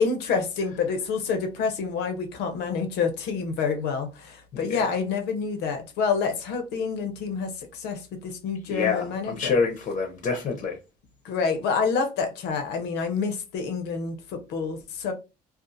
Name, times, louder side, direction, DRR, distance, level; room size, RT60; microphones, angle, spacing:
voice 1, 0.0-9.5 11.2-15.1, left 5 dB, 85° left, 0.7 m, -28 dB
voice 2, 8.7-10.8, left 5 dB, 45° left, 0.6 m, -26 dB
2.4 x 2.4 x 2.6 m
cardioid pair, 110°, 17 cm